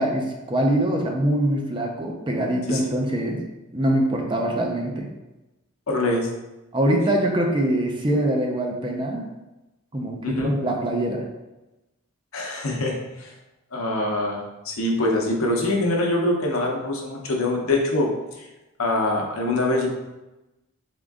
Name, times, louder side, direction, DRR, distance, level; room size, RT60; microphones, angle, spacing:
voice 1, 0.0-3.4 3.7-5.1 6.7-9.3 9.9-11.3, right 1 dB, 20° right, 1 dB, 0.5 m, -23 dB
voice 2, 5.9-6.3 10.2-10.5 12.3-13.3 13.7-18.5 18.8-19.9, left 2 dB, 70° left, 0 dB, 0.8 m, -24 dB
3.6 x 3.6 x 3.5 m, 1.0 s
head